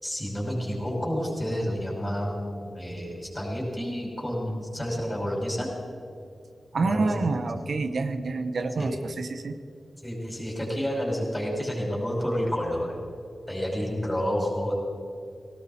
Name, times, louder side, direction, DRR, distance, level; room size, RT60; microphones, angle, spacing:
voice 1, 0.0-5.7 6.8-7.3 8.8-8.9 10.0-13.0 13.5-14.7, equal, 15° left, -2 dB, 5.5 m, -30 dB
voice 2, 6.7-9.6, right 3 dB, 70° right, 9 dB, 0.8 m, -28 dB
19.0 x 17.5 x 4.3 m, 2.4 s
wide cardioid pair, 100°, 0 cm